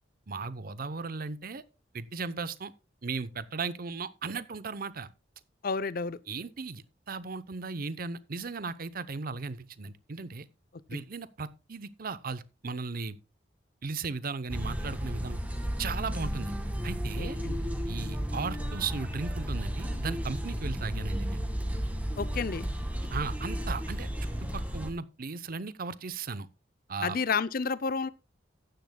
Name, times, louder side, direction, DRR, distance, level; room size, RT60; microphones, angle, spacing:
voice 1, 0.3-1.6 1.9-2.7 3.0-5.1 6.3-10.5 10.9-13.2 13.8-15.4 15.8-16.6 16.8-17.4 17.9-21.4 23.1-24.1 24.5-26.5 26.9-27.2, right 4 dB, 50° right, 0.7 m, -36 dB
voice 2, 5.6-6.2 10.9-11.0 17.2-17.6 22.2-22.7 27.0-28.1, left 5 dB, 50° left, 0.6 m, -31 dB
sound 1, 14.5-24.9, equal, 10° right, 1.7 m, -33 dB
14.5 x 10.5 x 2.2 m
head